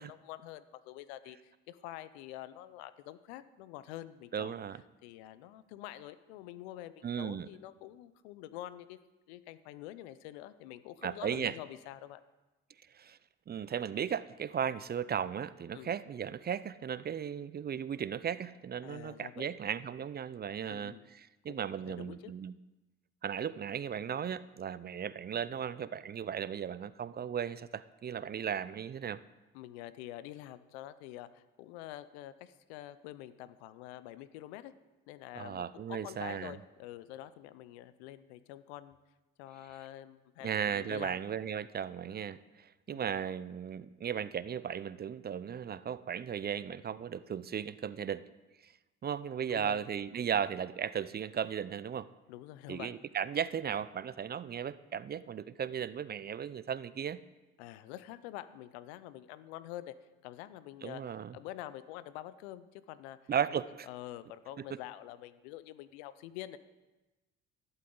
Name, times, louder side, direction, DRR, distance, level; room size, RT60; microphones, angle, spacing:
voice 1, 0.0-4.6 5.0-9.0 9.3-12.2 15.7-15.9 18.8-19.5 20.7-21.0 21.5-22.3 29.5-34.7 35.1-39.0 39.4-41.2 42.9-43.1 49.5-49.8 52.3-52.9 57.6-60.0 60.2-63.2 63.9-66.6, left 14 dB, 85° left, 15 dB, 0.6 m, -47 dB
voice 2, 4.3-4.8 7.0-7.5 11.0-11.5 12.9-13.2 13.5-22.5 23.2-29.2 35.4-36.6 40.4-48.2 48.6-48.7 49.0-52.1 52.7-57.2 60.8-61.3 63.3-63.9, right 8 dB, 30° right, 17 dB, 0.4 m, -36 dB
12.0 x 11.0 x 3.8 m, 1.1 s
hypercardioid pair, 55°, 32 cm